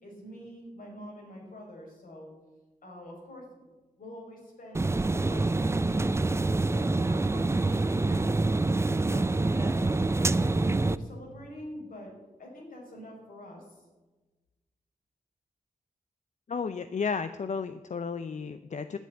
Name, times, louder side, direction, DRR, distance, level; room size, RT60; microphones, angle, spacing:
voice 1, 0.0-2.3 2.8-3.7 4.0-6.4 6.7-12.1 12.4-13.8, left 1 dB, 80° left, -1 dB, 5.0 m, -46 dB
sound 1, 4.7-11.0, right 2 dB, 20° right, 0.5 m, -26 dB
voice 2, 16.5-19.0, left 5 dB, 55° left, 11 dB, 0.5 m, -33 dB
10.0 x 8.9 x 8.6 m, 1.2 s
wide cardioid pair, 85°, 14 cm